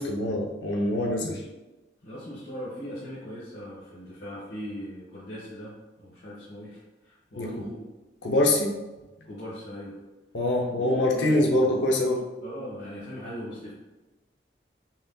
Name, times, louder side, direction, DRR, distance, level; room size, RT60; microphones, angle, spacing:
voice 1, 0.0-1.4 7.4-7.5 8.2-8.8 10.3-12.2, left 1 dB, 85° left, -1 dB, 0.6 m, -24 dB
voice 2, 2.0-7.8 9.2-10.0 10.7-10.9 11.1-11.5 12.4-13.7, equal, 60° left, -9 dB, 1.1 m, -39 dB
5.7 x 2.7 x 2.2 m, 1.1 s
head